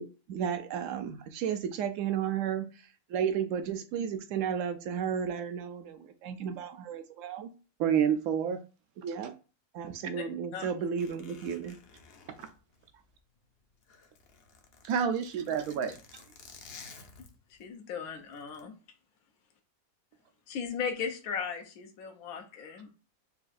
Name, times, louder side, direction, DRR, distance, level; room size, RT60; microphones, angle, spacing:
voice 1, 0.0-2.6 3.1-7.5 9.0-9.3 9.7-11.8, right 8 dB, 70° right, 8 dB, 0.9 m, -33 dB
voice 2, 7.8-8.6 12.4-12.5 14.8-16.2, right 8 dB, 90° right, 9 dB, 1.1 m, -28 dB
Zipper (clothing), 11.0-13.4 13.7-17.7 18.3-18.6, left 4 dB, 55° left, 0.8 m, -53 dB
voice 3, 17.5-18.7 20.5-22.9, left 6 dB, 80° left, 3 dB, 1.2 m, -37 dB
5.6 x 2.4 x 2.5 m, 0.35 s
omnidirectional pair, 1.5 m